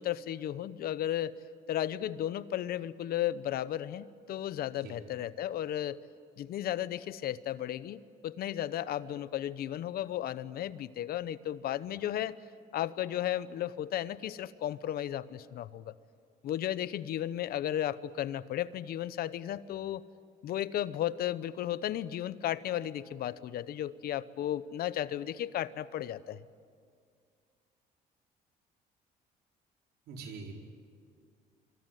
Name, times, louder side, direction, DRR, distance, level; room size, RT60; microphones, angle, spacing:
voice 1, 0.0-1.3 1.7-6.0 6.4-12.4 12.7-15.9 16.4-20.0 20.4-26.4, left 12 dB, 65° left, 16 dB, 0.9 m, -34 dB
voice 2, 30.1-30.5, right 4 dB, 70° right, 2 dB, 4.5 m, -43 dB
26.0 x 24.5 x 9.3 m, 2.2 s
cardioid pair, 110°, 17 cm